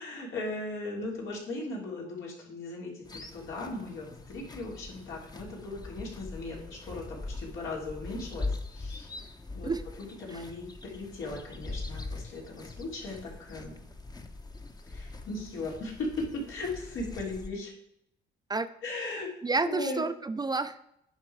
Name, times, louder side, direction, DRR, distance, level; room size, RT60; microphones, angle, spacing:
voice 1, 0.0-9.1 9.5-9.7 10.0-13.7 14.9-17.7 18.8-19.3 19.6-20.0, left 2 dB, 80° left, -3 dB, 3.3 m, -38 dB
sound 1, 3.0-17.5, left 3 dB, 20° left, 0.9 m, -42 dB
voice 2, 19.4-20.9, right 3 dB, 20° right, 11 dB, 0.5 m, -30 dB
9.7 x 5.4 x 4.7 m, 0.76 s
cardioid pair, 90°, 20 cm